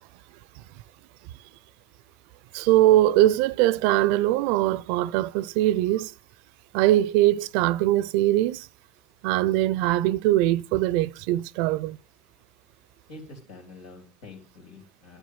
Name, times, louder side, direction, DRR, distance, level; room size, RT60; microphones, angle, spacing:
voice 1, 2.5-6.1 6.7-8.6 9.2-12.0, right 15 dB, 75° right, 0.5 m, -21 dB
voice 2, 13.1-15.2, left 2 dB, 85° left, 4.7 m, -46 dB
11.5 x 7.2 x 7.3 m
hypercardioid pair, 70°, 3 cm